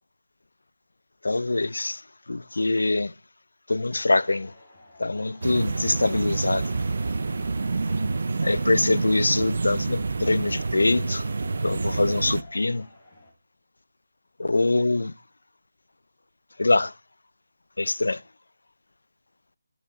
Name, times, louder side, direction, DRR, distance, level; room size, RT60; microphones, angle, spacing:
voice 1, 1.2-2.0 2.3-3.1 3.7-4.5 5.0-6.7 8.4-11.3 11.6-12.9 14.4-15.1 16.6-16.9 17.8-18.2, left 2 dB, 85° left, 0.4 m, -24 dB
sound 1, 4.0-13.3, left 2 dB, 15° left, 3.3 m, -50 dB
sound 2, 5.4-12.4, right 3 dB, 45° right, 0.5 m, -28 dB
12.5 x 6.7 x 4.1 m
figure-of-eight pair, 180°, 0 cm